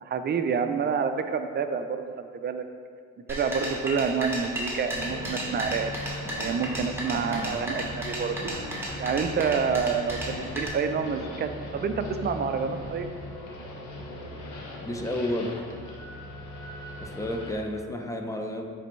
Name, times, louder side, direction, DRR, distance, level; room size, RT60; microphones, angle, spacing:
voice 1, 0.0-2.6 3.3-5.9 6.4-8.5 9.0-13.1, right 6 dB, 35° right, 7 dB, 0.5 m, -28 dB
sound 1, 3.3-10.7, right 1 dB, 10° right, 1.3 m, -34 dB
sound 2, 4.9-17.5, left 1 dB, 80° left, 1.0 m, -39 dB
voice 2, 14.8-15.6 17.0-18.6, left 1 dB, 10° left, 3 dB, 0.6 m, -31 dB
9.6 x 3.4 x 3.1 m, 2.1 s
cardioid pair, 90°, 30 cm